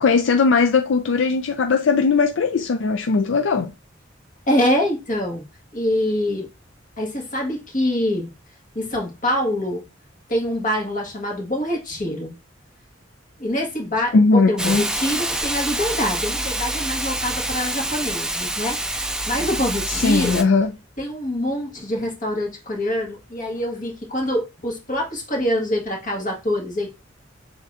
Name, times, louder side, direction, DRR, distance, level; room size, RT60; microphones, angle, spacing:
voice 1, 0.0-3.7 14.1-14.9 20.0-20.7, left 4 dB, 75° left, 0.4 m, -18 dB
voice 2, 4.5-5.4 5.7-6.5 7.0-8.3 8.7-9.8 10.3-12.4 13.4-18.8 19.3-20.4 21.0-26.9, left 1 dB, 40° left, 1.6 m, -25 dB
Hiss, 14.6-20.4, right 1 dB, 5° right, 0.3 m, -26 dB
6.5 x 2.9 x 2.5 m
head